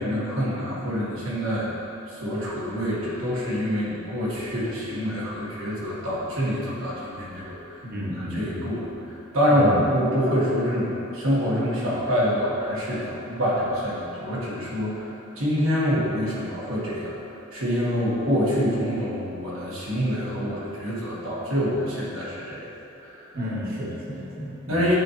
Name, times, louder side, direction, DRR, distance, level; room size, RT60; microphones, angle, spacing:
voice 1, 0.0-1.7 2.1-7.8 8.1-17.1 17.5-22.7 23.0-23.3 24.7-24.9, equal, 80° right, -7 dB, 1.5 m, -26 dB
voice 2, 7.8-8.7 9.5-9.8 23.3-24.9, equal, 45° right, -5 dB, 1.1 m, -32 dB
8.5 x 3.8 x 3.0 m, 3.0 s
head